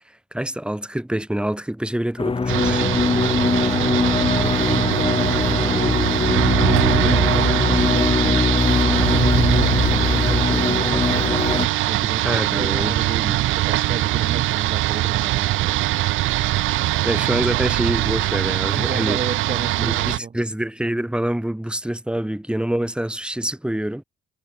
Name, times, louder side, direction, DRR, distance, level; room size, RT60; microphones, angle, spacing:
voice 1, 0.3-2.8 12.2-13.0 13.2-13.4 17.0-19.2 19.8-24.0, right 1 dB, 5° right, 7.3 m, -26 dB
sound 1, 2.2-11.7, left 4 dB, 25° left, 2.6 m, -21 dB
sound 2, 2.5-20.2, right 16 dB, 90° right, 1.3 m, -22 dB
voice 2, 3.6-6.1 6.7-11.2 11.9-15.8 18.7-20.3, right 5 dB, 35° right, 3.5 m, -32 dB
cardioid pair, 90°, 20 cm